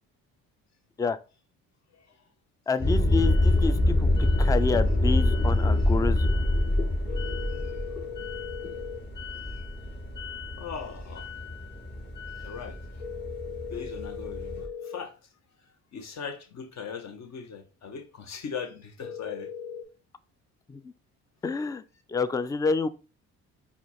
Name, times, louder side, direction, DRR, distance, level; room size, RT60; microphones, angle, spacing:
voice 1, 1.9-2.3 7.1-7.2 7.5-8.1 9.5-9.7 10.6-11.3 12.3-13.0 13.5-19.5, left 6 dB, 50° left, 1.0 m, -40 dB
voice 2, 2.7-6.3 20.7-20.9 21.4-21.8 22.1-22.9, left 4 dB, 10° left, 0.3 m, -28 dB
sound 1, 2.8-14.6, left 1 dB, 30° left, 1.6 m, -26 dB
sound 2, 7.1-9.0 13.0-15.0 19.0-19.8, left 7 dB, 70° left, 1.2 m, -38 dB
4.3 x 2.4 x 4.1 m
supercardioid pair, 65°, 35 cm